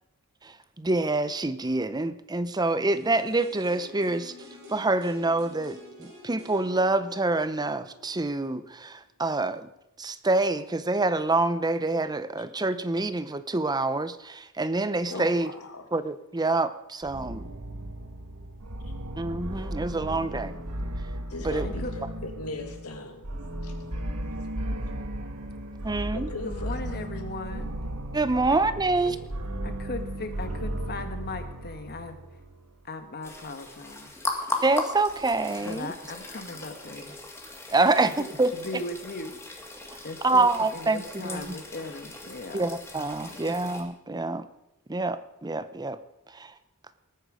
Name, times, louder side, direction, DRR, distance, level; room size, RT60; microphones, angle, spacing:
voice 1, 0.4-4.3 4.7-9.7 10.0-15.5 15.9-17.5 19.2-20.5 21.4-21.7 25.8-26.3 28.1-29.2 34.6-35.9 37.7-38.1 38.4-38.5 40.2-41.6 42.5-44.5 44.9-46.0 46.3-46.5, right 2 dB, 20° right, 13 dB, 0.7 m, -26 dB
sound 1, 2.9-8.8 9.1-9.2, left 1 dB, 60° right, 4.9 m, -49 dB
voice 2, 15.1-15.9 21.3-23.3 23.6-23.7 26.1-27.1 29.1-29.2 41.8-42.0, left 2 dB, 90° left, 5 dB, 2.2 m, -39 dB
sound 2, 17.0-32.7, right 1 dB, 85° right, 1.5 m, -35 dB
voice 3, 26.4-27.7 28.5-28.6 29.6-32.2 32.8-34.1 35.6-37.1 37.8-38.3 38.5-39.3 40.0-42.7 43.2-43.5, left 2 dB, 45° left, 8 dB, 1.5 m, -38 dB
sound 3, 33.2-43.8, left 2 dB, 10° left, 2.0 m, -38 dB
20.0 x 9.2 x 5.1 m, 0.87 s
head